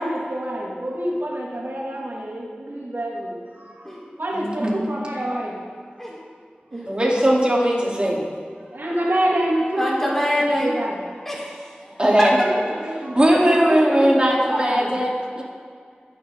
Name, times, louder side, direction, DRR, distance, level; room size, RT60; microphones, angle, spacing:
voice 1, 0.0-5.6 6.7-6.9 8.6-10.1 10.6-11.3 12.4-14.9, right 1 dB, 75° right, -4 dB, 3.2 m, -27 dB
voice 2, 4.3-4.7 6.9-8.2 12.0-12.4 13.1-15.4, equal, 30° right, -4 dB, 4.3 m, -19 dB
voice 3, 9.8-10.7 11.2-12.3, equal, 10° left, -5 dB, 5.0 m, -24 dB
25.0 x 11.5 x 4.2 m, 2.2 s
wide cardioid pair, 50°, 4 cm